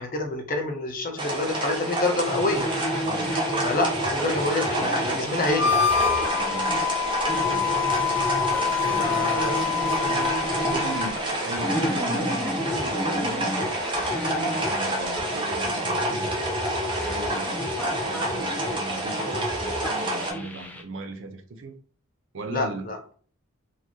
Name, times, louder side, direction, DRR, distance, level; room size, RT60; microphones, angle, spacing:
voice 1, 0.0-2.7 3.6-5.8 9.0-9.8 22.5-23.0, left 2 dB, 40° left, 0.7 m, -27 dB
sound 1, 1.2-20.3, right 1 dB, 25° right, 0.8 m, -29 dB
sound 2, 2.2-20.8, equal, 10° left, 0.4 m, -32 dB
voice 2, 3.0-3.4 6.4-6.9 7.4-7.7 8.8-9.3 10.0-16.4 17.0-21.7 22.3-22.9, right 2 dB, 65° right, 0.6 m, -38 dB
Harmonica, 5.5-11.2, left 8 dB, 85° left, 1.5 m, -26 dB
3.9 x 2.7 x 3.0 m
head